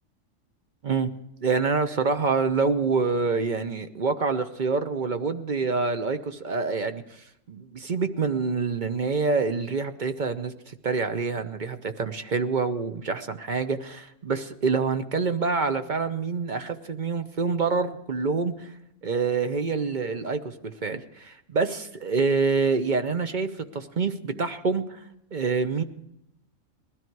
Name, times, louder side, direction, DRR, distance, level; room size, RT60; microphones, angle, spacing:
voice 1, 1.4-18.7 19.0-25.0 25.3-25.8, right 4 dB, 45° right, 8 dB, 0.8 m, -26 dB
20.0 x 13.0 x 4.6 m, 0.82 s
omnidirectional pair, 1.3 m